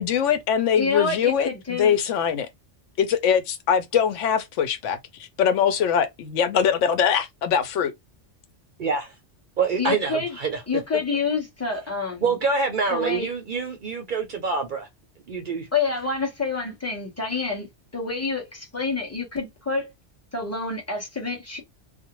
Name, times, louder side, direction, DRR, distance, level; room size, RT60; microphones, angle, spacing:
voice 1, 0.0-2.5 3.0-5.0 5.4-7.9, left 8 dB, 90° left, 1.0 m, -22 dB
voice 2, 0.8-2.0 9.8-10.4 10.7-12.2 12.9-13.3 15.7-17.7 17.9-19.9 20.3-21.6, left 4 dB, 15° left, 0.8 m, -27 dB
voice 3, 8.8-9.1 9.6-10.6 12.2-14.9 15.3-15.7, right 4 dB, 55° right, 0.6 m, -26 dB
2.4 x 2.1 x 2.9 m
omnidirectional pair, 1.2 m